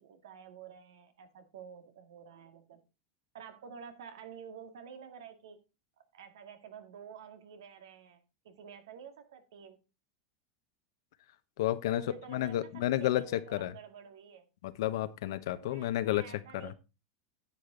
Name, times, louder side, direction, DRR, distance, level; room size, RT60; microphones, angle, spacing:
voice 1, 0.0-2.8 3.3-5.6 6.0-9.8 11.9-14.5 15.6-16.7, right 7 dB, 85° right, 2.0 m, -50 dB
voice 2, 11.6-12.0 12.3-13.7 14.6-16.2 16.6-16.7, left 13 dB, 75° left, 1.0 m, -31 dB
10.0 x 7.9 x 3.9 m
supercardioid pair, 135°, 2 cm